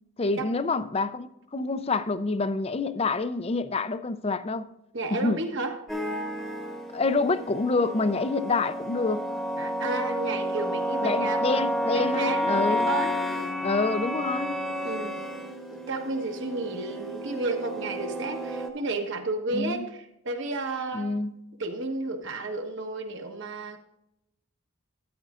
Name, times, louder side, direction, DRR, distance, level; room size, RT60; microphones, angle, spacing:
voice 1, 0.2-4.7 5.1-5.4 6.9-9.2 11.0-12.9 13.6-14.6 19.5-19.8 20.9-21.3, left 3 dB, 25° left, 0.4 m, -27 dB
voice 2, 4.9-5.8 9.6-11.6 11.9-13.1 14.8-15.3 15.9-21.1 21.6-23.8, right 2 dB, 55° right, 1.2 m, -32 dB
sound 1, 5.9-18.7, equal, ahead, 1.0 m, -30 dB
13.0 x 9.3 x 2.5 m
head